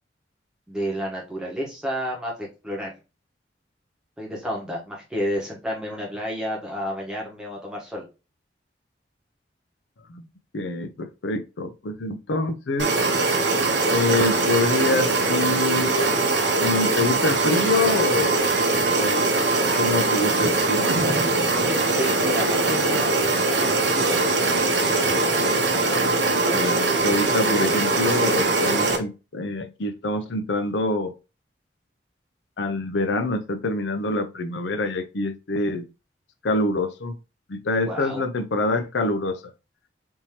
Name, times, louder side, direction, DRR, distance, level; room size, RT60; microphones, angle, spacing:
voice 1, 0.7-2.9 4.2-8.0 21.4-23.1 23.4-24.3 25.7-25.9 37.8-38.2, equal, 5° right, 1.0 m, -31 dB
voice 2, 10.5-12.9 13.9-16.2 16.6-18.6 19.0-19.4 19.8-21.0 26.5-31.1 32.6-35.8 36.4-37.2 37.5-39.4, left 2 dB, 75° left, 0.5 m, -26 dB
sound 1, 12.8-29.0, right 3 dB, 75° right, 0.8 m, -21 dB
3.6 x 2.8 x 2.9 m
head